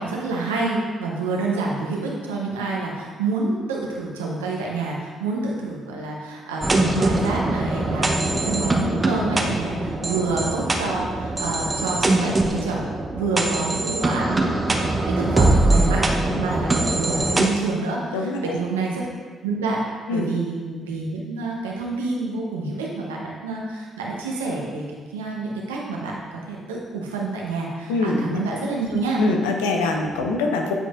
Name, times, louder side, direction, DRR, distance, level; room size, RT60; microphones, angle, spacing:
voice 1, 0.0-12.8 13.1-14.4 14.9-16.0 16.4-19.0 19.4-19.8 20.1-26.2 26.5-29.2, right 3 dB, 90° right, -2 dB, 0.9 m, -28 dB
sound 1, 6.6-17.5, right 2 dB, 30° right, 0.8 m, -22 dB
voice 2, 18.1-18.6 20.1-20.3 27.9-28.6 29.2-30.7, left 3 dB, 85° left, 3 dB, 0.6 m, -24 dB
8.9 x 5.1 x 2.5 m, 1.5 s
hypercardioid pair, 45°, 0 cm